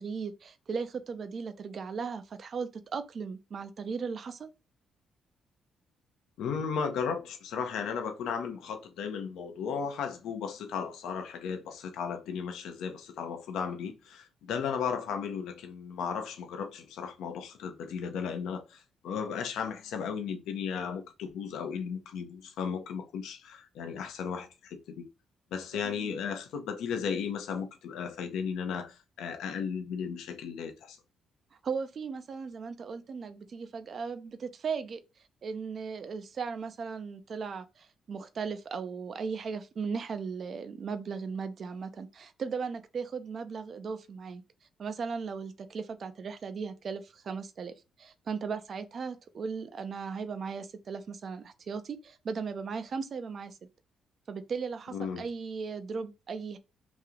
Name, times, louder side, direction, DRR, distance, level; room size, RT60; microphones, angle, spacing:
voice 1, 0.0-4.5 25.8-26.1 31.6-35.0 35.4-44.4 44.8-53.6 54.3-56.6, right 5 dB, 50° right, 0.5 m, -37 dB
voice 2, 6.4-25.0 25.5-31.0 54.9-55.3, left 6 dB, 80° left, 0.7 m, -35 dB
3.0 x 2.8 x 3.6 m
cardioid pair, 90°, 0 cm